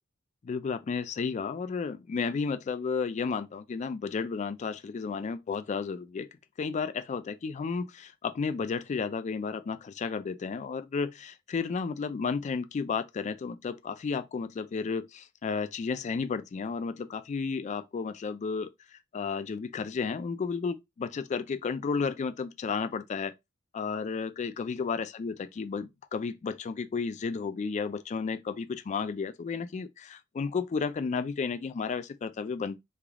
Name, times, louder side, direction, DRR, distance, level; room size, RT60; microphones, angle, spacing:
voice 1, 0.4-6.3 6.6-18.7 19.1-23.3 23.7-32.8, left 5 dB, 35° left, 0.3 m, -32 dB
3.3 x 2.3 x 3.5 m
head